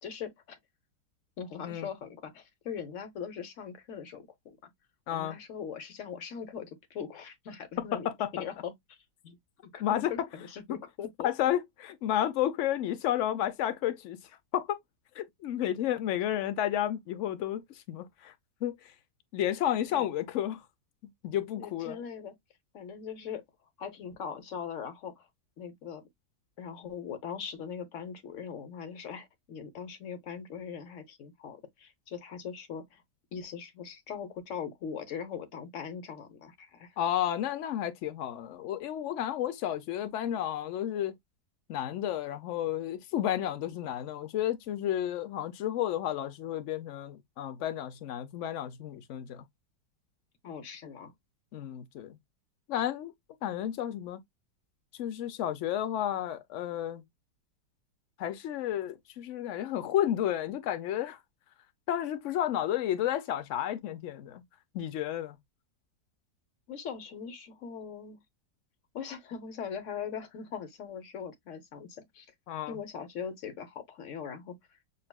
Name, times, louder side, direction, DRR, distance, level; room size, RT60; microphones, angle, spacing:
voice 1, 0.0-0.6 1.4-4.7 5.1-9.0 9.2-9.4 9.6-11.3 19.9-20.1 21.6-22.3 22.7-23.4 23.8-25.3 25.6-26.1 26.6-33.0 33.3-36.9 50.4-51.1 66.7-68.2 68.9-72.3 72.7-74.8, left 7 dB, 55° left, 1.0 m, -41 dB
voice 2, 5.1-5.4 7.9-8.3 9.8-10.1 11.2-14.2 14.5-14.8 15.2-18.3 18.6-18.7 19.3-20.6 21.2-22.0 37.0-41.1 41.7-49.4 51.5-52.1 52.7-53.1 53.4-54.2 55.0-57.0 58.2-61.2 61.9-64.4 64.7-65.4 72.5-72.7, left 11 dB, 75° left, 0.6 m, -31 dB
6.7 x 2.4 x 2.2 m
omnidirectional pair, 2.0 m